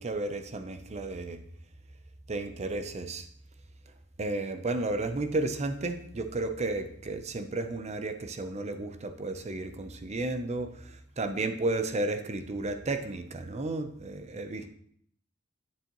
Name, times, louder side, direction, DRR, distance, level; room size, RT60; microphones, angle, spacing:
voice 1, 0.0-1.4 2.3-3.2 4.2-14.6, right 2 dB, 30° right, 8 dB, 0.6 m, -33 dB
9.2 x 7.3 x 3.0 m, 0.67 s
head